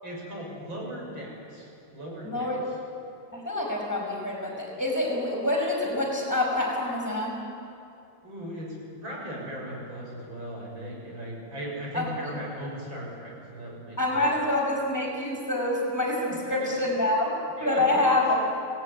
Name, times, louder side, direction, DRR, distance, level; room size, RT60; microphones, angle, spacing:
voice 1, 0.0-2.8 8.2-14.2 16.3-16.9 17.6-18.4, equal, 80° right, -3 dB, 7.4 m, -38 dB
voice 2, 2.2-2.6 3.3-7.4 11.9-12.1 14.0-17.3 17.6-18.4, left 2 dB, 10° left, -1 dB, 5.3 m, -26 dB
24.5 x 18.0 x 9.9 m, 2.6 s
omnidirectional pair, 2.1 m